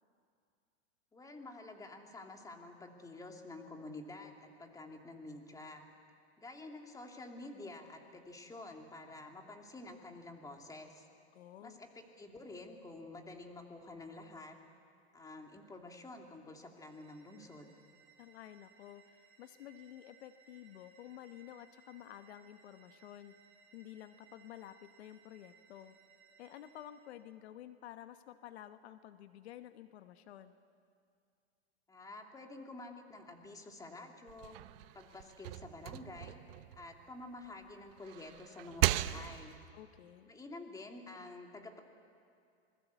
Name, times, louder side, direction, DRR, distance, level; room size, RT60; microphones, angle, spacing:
voice 1, 1.1-5.8 6.4-11.1 11.6-14.6 15.1-17.7 31.9-34.6 34.9-36.4 36.8-39.5 40.3-41.8, left 2 dB, 10° left, 3 dB, 2.6 m, -49 dB
voice 2, 11.3-11.8 18.2-23.3 23.7-25.9 26.4-30.6 39.7-40.3, left 12 dB, 70° left, 10 dB, 1.2 m, -51 dB
sound 1, 16.7-27.2, right 6 dB, 40° right, 5.5 m, -65 dB
sound 2, 34.3-37.5 37.9-39.7, right 15 dB, 60° right, 0.9 m, -37 dB
26.5 x 21.0 x 8.2 m, 2.4 s
hypercardioid pair, 130°, 33 cm